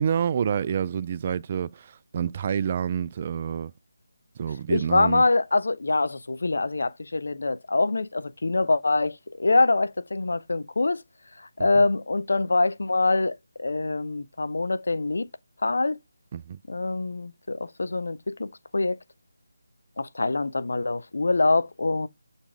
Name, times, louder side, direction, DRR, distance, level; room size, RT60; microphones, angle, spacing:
voice 1, 0.0-3.7 4.4-5.2 11.6-11.8 16.3-16.6, right 8 dB, 30° right, 0.3 m, -28 dB
voice 2, 4.7-11.0 11.6-15.3 15.6-16.0 16.7-19.0 20.0-22.1, left 3 dB, 65° left, 0.7 m, -24 dB
7.2 x 4.1 x 3.4 m
figure-of-eight pair, 160°, 0 cm